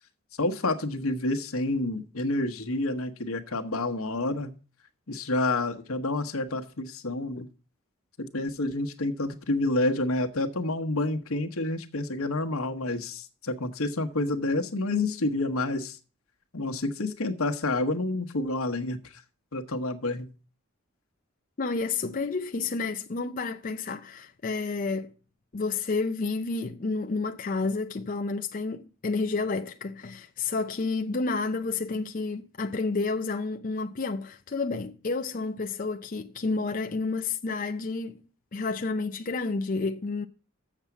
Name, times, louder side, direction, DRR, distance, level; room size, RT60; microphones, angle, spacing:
voice 1, 0.4-4.5 5.1-7.5 8.2-16.0 16.5-19.2 19.5-20.3, left 2 dB, 85° left, 1.2 m, -29 dB
voice 2, 21.6-25.1 25.5-38.2 38.5-40.3, left 3 dB, 40° left, 0.5 m, -30 dB
7.3 x 6.9 x 7.2 m
head